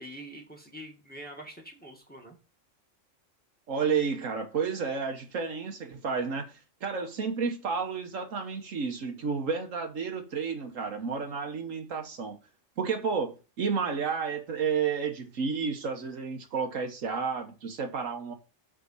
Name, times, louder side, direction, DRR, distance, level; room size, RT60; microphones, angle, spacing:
voice 1, 0.0-2.4, equal, 5° left, 1.6 m, -45 dB
voice 2, 3.7-12.4 12.8-18.3, right 5 dB, 80° right, 1.6 m, -31 dB
7.5 x 3.8 x 5.5 m
omnidirectional pair, 1.3 m